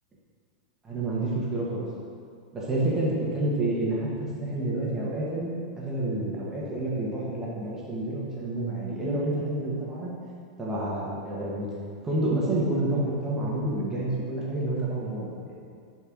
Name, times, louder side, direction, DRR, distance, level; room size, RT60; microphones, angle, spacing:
voice 1, 0.8-1.9 2.5-5.5 5.8-10.1 10.6-11.7 12.0-15.5, right 1 dB, 15° right, -6 dB, 1.8 m, -29 dB
6.6 x 4.7 x 6.3 m, 2.3 s
hypercardioid pair, 130°, 3 cm